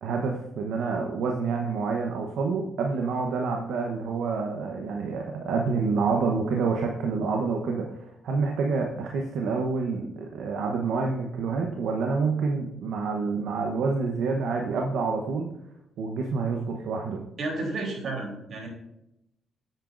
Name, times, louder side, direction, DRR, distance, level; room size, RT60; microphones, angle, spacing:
voice 1, 0.0-15.5 16.0-17.2, right 4 dB, 75° right, 2 dB, 1.0 m, -28 dB
voice 2, 17.4-18.7, right 2 dB, 55° right, 0 dB, 3.4 m, -32 dB
9.2 x 8.9 x 2.6 m, 0.83 s
cardioid pair, 90°, 0 cm